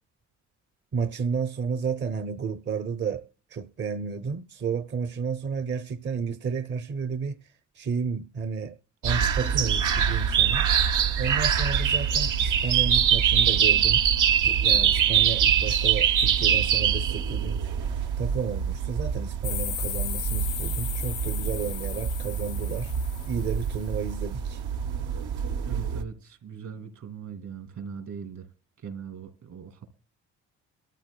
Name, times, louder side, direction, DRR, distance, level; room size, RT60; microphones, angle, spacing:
voice 1, 0.9-7.4 7.7-8.8 9.0-10.7 11.2-14.0 14.4-17.6 18.2-22.9 23.3-24.6, right 5 dB, 40° right, 0.6 m, -32 dB
sound 1, 9.0-26.0, right 8 dB, 90° right, 1.0 m, -24 dB
sound 2, 19.4-23.8, left 12 dB, 75° left, 0.7 m, -36 dB
voice 2, 25.6-28.5 28.8-30.0, right 6 dB, 70° right, 2.6 m, -40 dB
22.0 x 13.0 x 2.2 m
cardioid pair, 90°, 30 cm